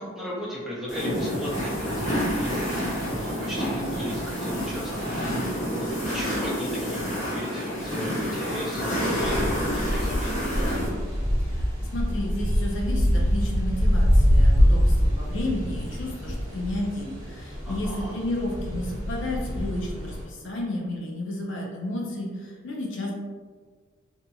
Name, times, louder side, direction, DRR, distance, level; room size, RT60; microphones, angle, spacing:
voice 1, 0.0-2.7 3.1-5.1 5.8-10.5 17.6-18.1, equal, ahead, -7 dB, 0.5 m, -36 dB
sound 1, 0.9-10.9, equal, 35° left, 1.0 m, -28 dB
sound 2, 9.2-20.2, equal, 80° right, 0.9 m, -24 dB
voice 2, 11.4-23.1, left 1 dB, 65° left, -1 dB, 0.6 m, -32 dB
2.8 x 2.7 x 2.3 m, 1.5 s
head